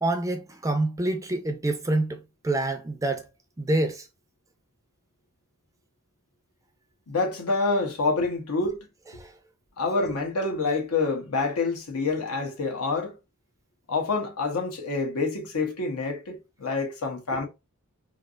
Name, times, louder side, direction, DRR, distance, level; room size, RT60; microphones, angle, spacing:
voice 1, 0.0-3.2 3.6-4.0 9.2-9.3, right 2 dB, 15° right, 0.5 m, -27 dB
voice 2, 7.1-8.8 9.8-13.2 13.9-17.5, left 3 dB, 75° left, 0.9 m, -27 dB
3.2 x 2.4 x 2.5 m
head